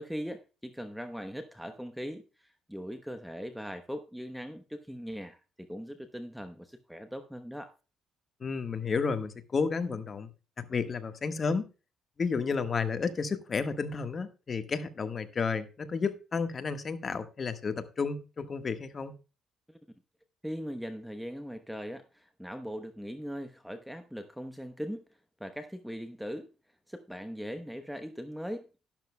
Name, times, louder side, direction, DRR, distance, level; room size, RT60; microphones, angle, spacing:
voice 1, 0.0-7.7 20.4-25.0 25.4-26.5 26.9-28.7, equal, ahead, 9 dB, 0.9 m, -40 dB
voice 2, 8.4-10.3 10.6-11.7 12.2-19.1, left 5 dB, 40° left, 9 dB, 1.4 m, -32 dB
12.0 x 11.5 x 2.2 m, 0.32 s
cardioid pair, 80°, 0 cm